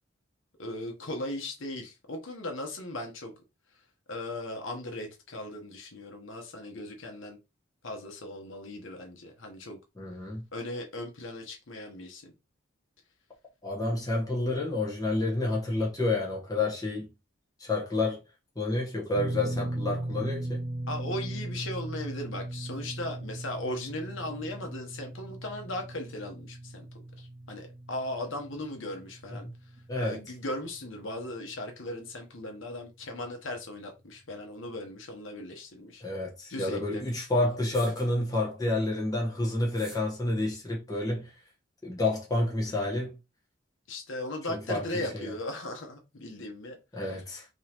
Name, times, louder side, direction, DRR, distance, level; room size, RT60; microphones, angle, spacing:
voice 1, 0.6-3.3 4.1-7.4 7.8-9.8 10.5-12.3 20.9-29.5 30.0-36.0 36.5-37.3 43.9-46.8 47.0-47.2, left 1 dB, 75° left, 1.0 m, -38 dB
voice 2, 10.0-10.4 13.6-17.1 17.6-18.2 18.5-20.6 29.3-29.5 29.9-30.2 36.0-41.3 41.8-43.1 44.5-44.8 45.1-45.3 46.9-47.5, left 2 dB, 20° left, 1.2 m, -29 dB
sound 1, 19.1-31.4 31.6-31.9 33.6-33.7, right 1 dB, 45° right, 1.0 m, -38 dB
sound 2, 35.5-35.6 37.5-38.3 39.6-40.2, equal, 5° right, 1.0 m, -49 dB
3.7 x 3.0 x 3.0 m
head